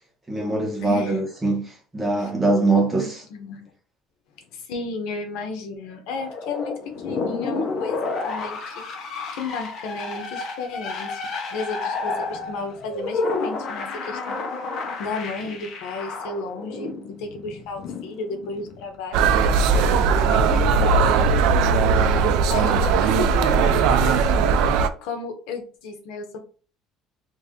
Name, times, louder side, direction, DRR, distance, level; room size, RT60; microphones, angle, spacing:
voice 1, 0.3-3.2, right 2 dB, 10° right, 0.8 m, -22 dB
voice 2, 0.8-1.2 2.2-2.3 3.0-3.7 4.5-11.2 11.5-14.6 15.0-21.2 22.1-26.4, left 4 dB, 75° left, 0.9 m, -34 dB
sound 1, 6.1-18.9, left 3 dB, 40° left, 0.7 m, -31 dB
sound 2, 19.1-24.9, right 5 dB, 75° right, 0.4 m, -18 dB
3.3 x 2.6 x 3.5 m
cardioid pair, 175°, 0 cm